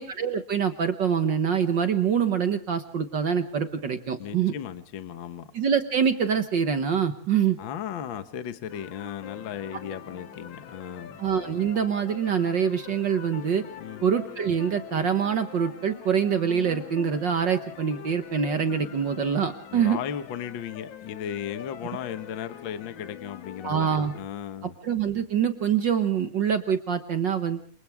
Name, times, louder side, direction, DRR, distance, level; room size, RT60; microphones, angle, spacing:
voice 1, 0.0-4.5 5.5-7.6 11.2-13.6 14.0-20.0 23.6-24.1 24.8-27.6, right 7 dB, 55° right, 8 dB, 1.3 m, -25 dB
voice 2, 4.2-5.5 7.6-11.2 13.8-14.0 19.7-24.7, left 9 dB, 50° left, 10 dB, 1.6 m, -36 dB
sound 1, 8.7-24.2, left 8 dB, 85° left, 2.8 m, -44 dB
28.0 x 27.5 x 3.5 m, 0.42 s
omnidirectional pair, 3.3 m